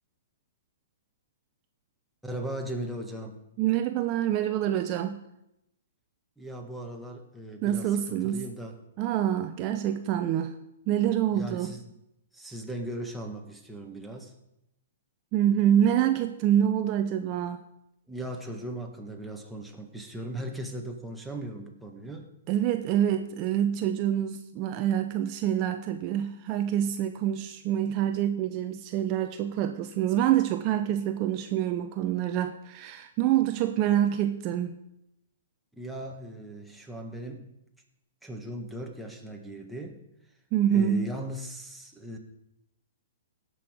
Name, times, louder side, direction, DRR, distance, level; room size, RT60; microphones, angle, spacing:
voice 1, 2.2-3.4 6.4-8.8 11.3-11.9 12.3-14.3 18.1-22.3 35.8-37.5 38.2-40.0 40.7-42.2, right 1 dB, ahead, 0 dB, 1.6 m, -38 dB
voice 2, 3.6-5.2 7.6-8.5 9.0-10.5 10.9-11.8 15.3-17.6 22.5-34.8 40.5-41.1, right 10 dB, 35° right, 8 dB, 0.7 m, -26 dB
16.5 x 6.4 x 5.2 m, 0.85 s
hypercardioid pair, 130°, 0 cm